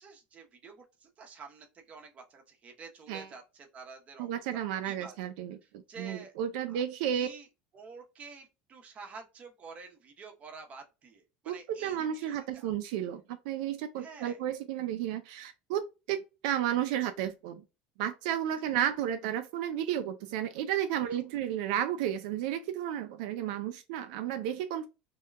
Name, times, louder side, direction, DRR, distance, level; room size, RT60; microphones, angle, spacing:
voice 1, 0.0-4.4 4.8-5.3 5.6-6.3 6.7-7.5 7.7-12.7 14.0-14.4 18.6-18.8 21.1-21.2, right 4 dB, 30° right, 0.8 m, -49 dB
voice 2, 4.2-7.3 11.5-17.6 18.0-24.9, right 10 dB, 80° right, 0.3 m, -33 dB
2.8 x 2.2 x 3.3 m
cardioid pair, 135°, 4 cm